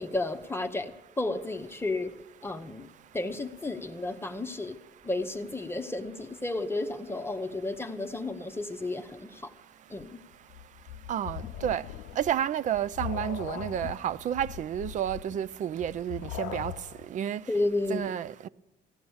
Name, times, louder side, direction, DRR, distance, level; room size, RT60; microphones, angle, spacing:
voice 1, 0.0-2.2 2.4-2.9 3.1-4.8 5.0-9.5 9.9-10.2 17.5-18.1, left 2 dB, 15° left, 0.8 m, -32 dB
sound 1, 10.0-17.1, left 12 dB, 75° left, 0.6 m, -40 dB
voice 2, 11.1-11.8 12.2-16.7 17.1-17.4 17.9-18.5, right 10 dB, 45° right, 0.4 m, -30 dB
15.5 x 11.5 x 7.1 m
cardioid pair, 110°, 17 cm